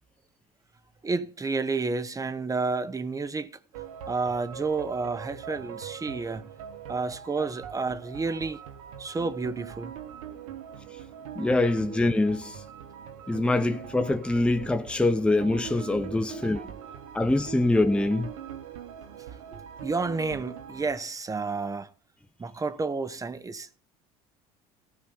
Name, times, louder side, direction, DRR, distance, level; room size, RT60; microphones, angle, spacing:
voice 1, 1.0-3.6 4.1-6.5 6.9-8.6 9.0-9.9 19.5-21.9 22.4-23.8, right 4 dB, 20° right, 1.1 m, -30 dB
sound 1, 3.7-21.0, right 9 dB, 90° right, 1.6 m, -42 dB
voice 2, 11.4-12.6 13.3-16.6 17.1-18.3, left 2 dB, 5° left, 0.9 m, -24 dB
15.0 x 5.4 x 8.1 m
supercardioid pair, 90°, 17 cm